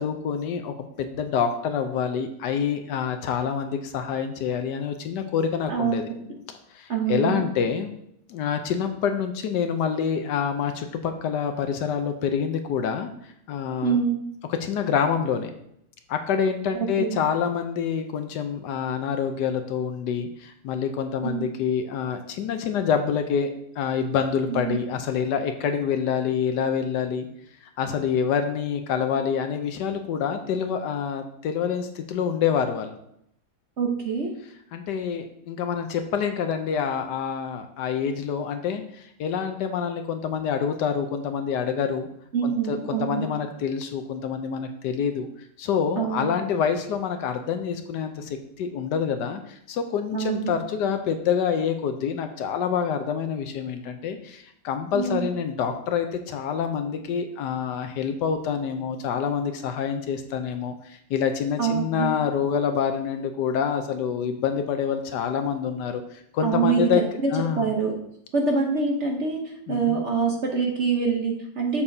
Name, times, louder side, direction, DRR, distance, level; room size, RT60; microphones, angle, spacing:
voice 1, 0.0-6.1 6.7-7.9 8.3-13.1 13.5-14.0 14.5-15.5 16.1-27.3 27.8-33.0 34.7-42.1 42.4-45.3 45.6-66.0 66.3-67.0 67.3-67.7 69.7-70.0, left 7 dB, 75° left, 7 dB, 1.2 m, -27 dB
voice 2, 5.7-6.1 6.9-7.4 13.8-14.2 16.7-17.2 21.2-21.6 24.5-24.8 33.8-34.3 42.3-43.3 46.0-46.3 50.1-50.5 54.9-55.2 61.6-62.1 66.4-67.3 67.6-67.9 68.3-71.8, right 5 dB, 50° right, 1 dB, 0.9 m, -25 dB
7.1 x 6.7 x 2.7 m, 0.74 s
omnidirectional pair, 2.0 m